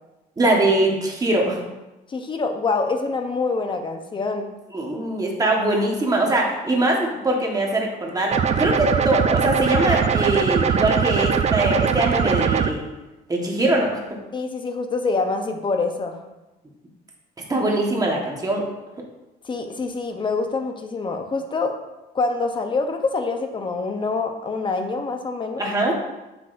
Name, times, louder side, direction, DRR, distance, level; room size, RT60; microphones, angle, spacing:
voice 1, 0.4-1.6 4.7-12.8 13.3-14.0 17.5-18.6 25.6-26.0, right 2 dB, 20° right, -1 dB, 1.3 m, -22 dB
voice 2, 2.1-4.5 14.3-16.2 19.4-21.7 22.1-25.7, left 3 dB, 30° left, 5 dB, 0.8 m, -25 dB
sound 1, 8.3-12.7, right 7 dB, 40° right, 0.5 m, -21 dB
7.4 x 6.0 x 2.6 m, 1.0 s
cardioid pair, 110°, 17 cm